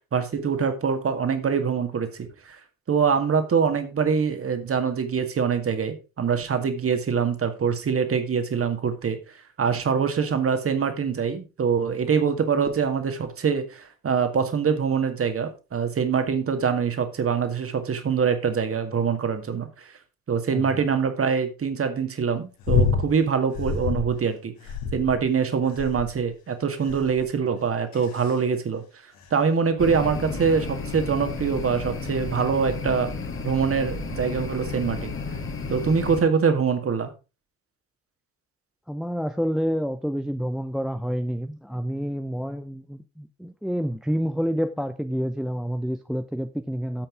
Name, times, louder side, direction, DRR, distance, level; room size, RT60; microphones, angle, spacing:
voice 1, 0.1-2.6 2.9-9.2 9.6-19.9 20.3-24.5 24.9-28.8 29.3-33.1 33.4-35.2 35.7-37.1, right 6 dB, 30° right, 2.0 m, -24 dB
sound 1, 22.6-23.1 23.5-24.1 24.7-25.3 25.8-26.2 26.9-27.2 27.9-28.3 29.2-29.3, left 5 dB, 55° left, 2.4 m, -26 dB
sound 2, 29.8-36.2, left 4 dB, 30° left, 1.9 m, -32 dB
voice 2, 38.9-47.1, equal, ahead, 0.6 m, -28 dB
9.0 x 7.8 x 4.9 m
figure-of-eight pair, 55°, 42 cm